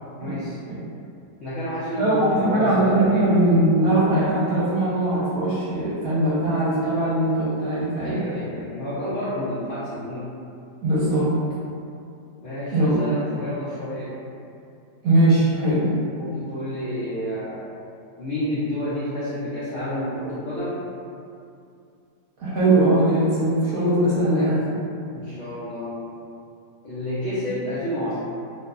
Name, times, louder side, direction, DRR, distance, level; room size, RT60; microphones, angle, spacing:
voice 1, 0.2-0.6 1.4-3.3 7.9-10.3 12.4-14.1 15.7-17.7 18.2-20.8 25.1-26.0 26.8-28.3, equal, 75° left, -11 dB, 0.6 m, -30 dB
voice 2, 2.0-8.2 10.8-11.3 12.7-13.0 15.0-15.9 22.4-24.8, right 1 dB, 65° right, -9 dB, 1.1 m, -20 dB
2.9 x 2.0 x 2.3 m, 2.5 s
omnidirectional pair, 1.8 m